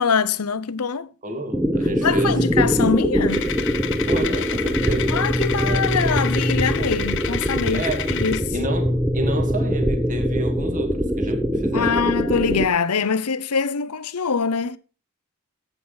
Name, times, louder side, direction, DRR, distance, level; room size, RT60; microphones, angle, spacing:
voice 1, 0.0-1.1 2.0-3.4 5.1-8.5 11.7-14.8, left 5 dB, 90° left, 0.8 m, -23 dB
voice 2, 1.2-2.3 4.1-5.2 5.6-5.9 7.7-8.1 8.5-12.2, right 1 dB, 35° right, 2.3 m, -29 dB
sound 1, 1.5-12.7, equal, 5° right, 1.0 m, -22 dB
sound 2, 3.3-8.4, left 10 dB, 60° left, 1.2 m, -30 dB
10.5 x 8.6 x 5.7 m
head